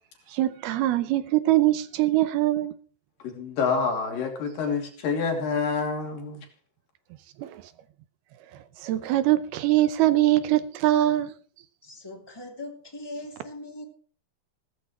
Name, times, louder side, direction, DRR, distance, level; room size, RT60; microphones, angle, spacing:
voice 1, 0.3-2.7 7.4-7.6 8.8-11.3, right 15 dB, 75° right, 2.6 m, -23 dB
voice 2, 3.2-6.5, left 5 dB, 60° left, 4.2 m, -27 dB
voice 3, 11.8-13.9, left 1 dB, 10° left, 2.0 m, -40 dB
16.0 x 14.0 x 3.1 m
omnidirectional pair, 4.8 m